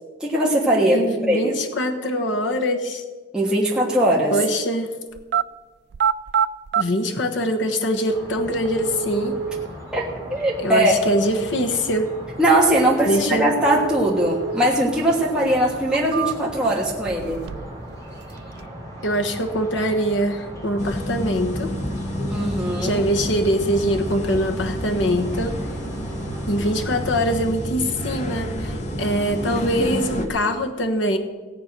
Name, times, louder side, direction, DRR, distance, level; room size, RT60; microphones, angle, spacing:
voice 1, 0.2-1.5 3.3-4.3 9.9-11.0 12.4-17.4 22.3-23.0 29.8-29.9, right 1 dB, 5° right, -4 dB, 1.5 m, -20 dB
voice 2, 0.9-3.0 4.3-4.9 6.8-9.4 10.6-12.1 13.1-13.5 19.0-21.7 22.8-25.5 26.5-31.2, equal, 70° left, 4 dB, 1.2 m, -23 dB
sound 1, 5.2-5.5 5.9-6.9 7.8-7.9 8.6-9.7 13.6-14.7 15.1-15.2 15.8-16.6 17.1-17.8 18.1-18.7, right 8 dB, 55° right, 0.3 m, -26 dB
sound 2, 8.1-27.4, equal, 15° left, 3.1 m, -38 dB
sound 3, 20.8-30.3, equal, 35° left, 1.2 m, -29 dB
17.0 x 8.3 x 6.0 m, 1.4 s
head